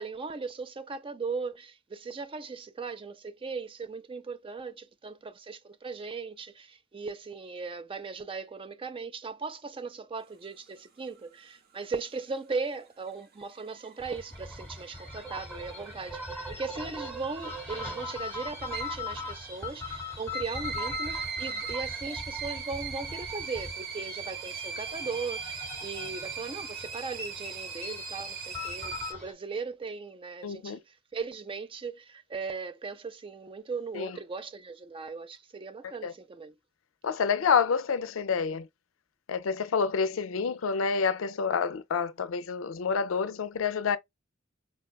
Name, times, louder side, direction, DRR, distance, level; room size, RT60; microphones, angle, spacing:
voice 1, 0.0-36.5, right 4 dB, 25° right, 0.4 m, -38 dB
sound 1, 12.9-29.1, right 6 dB, 50° right, 0.7 m, -40 dB
sound 2, 14.0-29.3, left 2 dB, 5° left, 0.9 m, -40 dB
voice 2, 30.4-30.8 33.9-34.1 36.0-36.1 37.0-38.7 39.3-44.0, left 6 dB, 75° left, 0.4 m, -28 dB
4.4 x 2.3 x 2.3 m
head